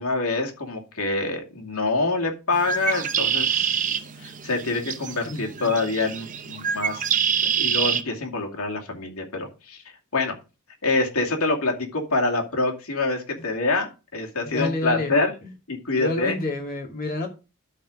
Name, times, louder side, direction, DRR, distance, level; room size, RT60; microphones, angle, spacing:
voice 1, 0.0-3.9 4.2-9.8 10.1-10.3 10.8-13.9 14.1-15.3 15.7-16.3, left 3 dB, 80° left, 2.3 m, -26 dB
Bird, 2.5-8.0, right 8 dB, 35° right, 0.7 m, -26 dB
voice 2, 5.2-5.7 14.4-15.1 15.4-15.5 16.0-17.3, left 2 dB, 40° left, 2.5 m, -29 dB
12.0 x 4.3 x 5.0 m
head